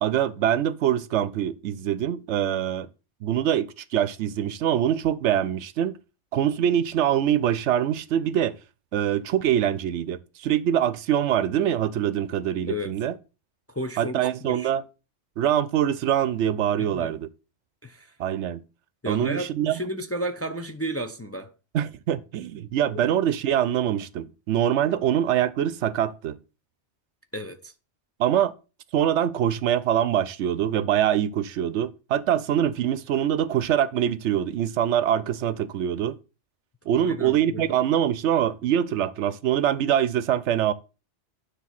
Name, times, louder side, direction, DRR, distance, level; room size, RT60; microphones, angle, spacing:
voice 1, 0.0-2.9 3.2-6.0 6.3-8.6 8.9-13.1 14.0-14.8 15.4-17.3 18.2-18.6 19.1-19.8 21.7-26.4 28.2-28.5 28.9-36.2 36.9-40.7, right 10 dB, 75° right, 0.9 m, -24 dB
voice 2, 13.7-14.7 16.8-17.1 17.8-18.1 19.0-21.5 22.9-23.1 27.3-27.7 36.9-37.7, equal, 15° left, 0.5 m, -33 dB
9.8 x 3.3 x 5.8 m
omnidirectional pair, 1.2 m